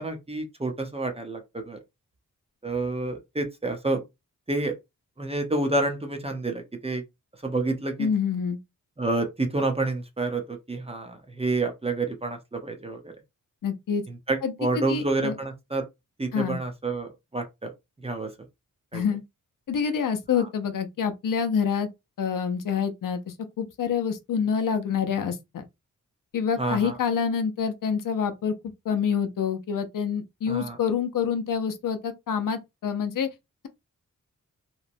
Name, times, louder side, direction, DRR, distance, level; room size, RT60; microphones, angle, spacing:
voice 1, 0.0-1.8 2.6-4.0 4.5-4.7 5.2-7.0 7.4-8.1 9.0-13.1 14.1-15.8 16.2-17.7 18.0-18.3 18.9-19.0 26.6-27.0 30.5-30.8, right 2 dB, 20° right, 0.6 m, -29 dB
voice 2, 8.0-8.6 13.6-14.0 14.4-15.4 16.3-16.6 18.9-19.2 19.7-21.9 22.2-25.7 26.3-28.5 28.9-33.3, left 7 dB, 70° left, 0.5 m, -27 dB
2.9 x 2.1 x 2.5 m
wide cardioid pair, 95°, 33 cm